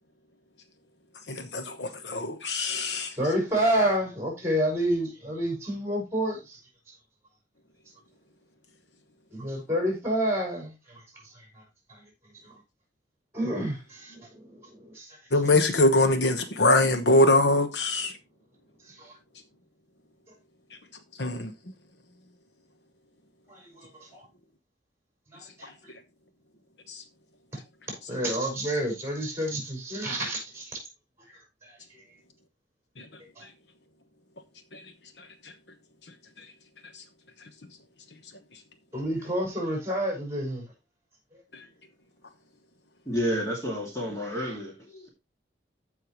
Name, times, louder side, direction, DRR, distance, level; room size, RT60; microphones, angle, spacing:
voice 1, 1.3-3.1 15.3-18.1 21.2-21.5, left 2 dB, 65° left, 1.2 m, -23 dB
voice 2, 3.2-6.6 9.3-11.0 11.4-11.6 11.9-12.0 12.4-12.5 13.3-15.2 19.0-19.1 23.5-24.3 25.3-25.9 27.9-30.8 31.3-32.0 33.4-33.5 38.9-40.7, right 1 dB, 15° right, 5.5 m, -29 dB
voice 3, 43.1-45.1, equal, 15° left, 2.4 m, -30 dB
15.0 x 5.7 x 3.1 m
head